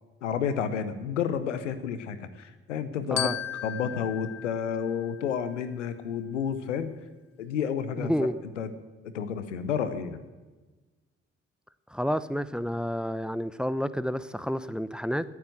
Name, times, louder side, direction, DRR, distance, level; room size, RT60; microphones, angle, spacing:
voice 1, 0.2-3.3 3.6-6.9 7.4-8.1 8.6-8.7 9.1-10.2, left 7 dB, 90° left, 0.8 m, -30 dB
Glockenspiel, 3.2-5.6, left 11 dB, 45° left, 0.6 m, -36 dB
voice 2, 8.0-8.3 11.9-15.2, equal, ahead, 0.8 m, -29 dB
18.0 x 9.5 x 7.7 m
hypercardioid pair, 40°, 36 cm